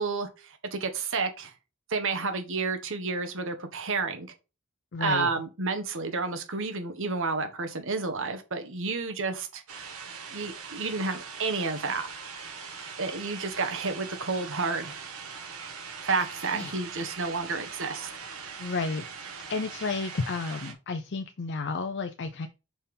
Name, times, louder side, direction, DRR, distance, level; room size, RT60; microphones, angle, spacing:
voice 1, 0.0-1.5 1.9-4.3 5.0-9.6 10.3-12.1 13.0-15.0 16.0-18.1, right 4 dB, 60° right, 1.4 m, -30 dB
voice 2, 4.9-5.3 16.5-16.7 18.6-19.0 19.5-22.5, left 4 dB, 55° left, 0.5 m, -31 dB
sound 1, 9.7-20.7, right 6 dB, 90° right, 1.8 m, -41 dB
5.6 x 4.4 x 5.3 m
head